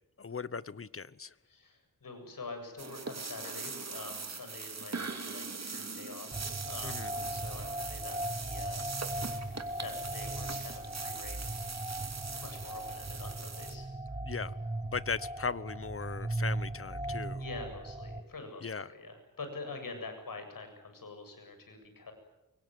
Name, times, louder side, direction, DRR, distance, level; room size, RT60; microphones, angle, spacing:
voice 1, 0.2-1.3 6.8-7.1 14.2-14.6 14.8-17.4 18.6-18.9, left 5 dB, 40° left, 18 dB, 1.0 m, -38 dB
voice 2, 1.5-9.5 9.8-11.5 12.4-14.3 17.1-22.1, left 3 dB, 80° left, 6 dB, 7.9 m, -46 dB
sound 1, 2.8-13.7, right 4 dB, 50° right, 2.9 m, -41 dB
sound 2, 6.3-18.2, right 1 dB, 20° right, 1.6 m, -38 dB
26.0 x 23.5 x 9.5 m, 0.94 s
wide cardioid pair, 95°, 33 cm